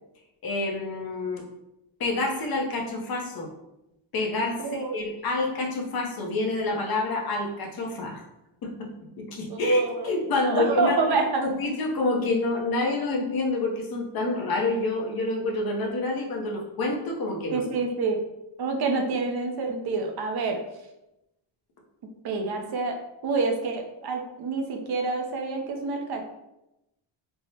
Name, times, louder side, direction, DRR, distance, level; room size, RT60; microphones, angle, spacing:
voice 1, 0.4-1.4 2.0-3.5 4.1-8.2 8.6-8.9 9.2-11.0 11.6-17.6, left 2 dB, 45° left, 0 dB, 0.7 m, -28 dB
voice 2, 4.6-5.1 9.5-11.4 14.2-14.4 17.5-18.2 18.6-20.6 22.2-23.0 23.2-26.3, right 4 dB, 50° right, 4 dB, 0.5 m, -27 dB
3.4 x 2.0 x 2.7 m, 0.91 s
cardioid pair, 125°, 49 cm